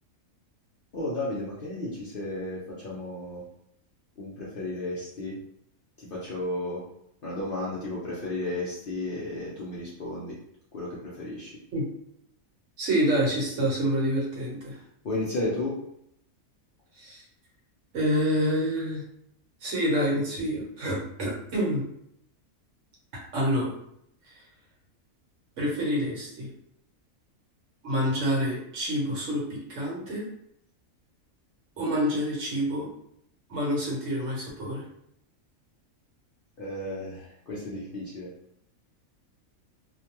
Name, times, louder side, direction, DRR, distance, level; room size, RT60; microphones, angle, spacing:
voice 1, 0.9-3.4 4.2-5.4 6.0-6.8 7.2-10.4 10.7-11.5 15.0-15.8 36.6-38.3, left 2 dB, 55° left, -6 dB, 0.6 m, -33 dB
voice 2, 12.8-14.8 17.0-17.2 17.9-19.0 19.6-21.8 23.3-23.7 24.3-24.4 25.6-26.5 27.8-30.3 31.8-32.9 33.5-34.8, equal, 65° right, -3 dB, 1.1 m, -27 dB
2.6 x 2.2 x 2.8 m, 0.73 s
omnidirectional pair, 1.5 m